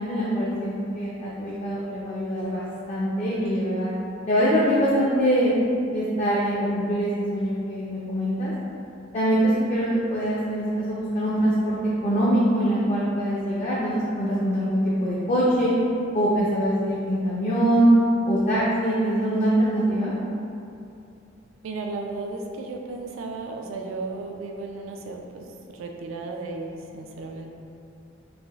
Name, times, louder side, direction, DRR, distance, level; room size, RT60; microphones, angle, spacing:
voice 1, 0.0-3.9 4.3-5.5 5.9-8.5 9.1-11.8 12.0-15.7 16.1-17.9 18.3-20.1, equal, 40° left, -7 dB, 0.4 m, -23 dB
voice 2, 21.6-27.5, right 3 dB, 80° right, 2 dB, 0.3 m, -34 dB
3.2 x 2.5 x 2.3 m, 2.5 s
head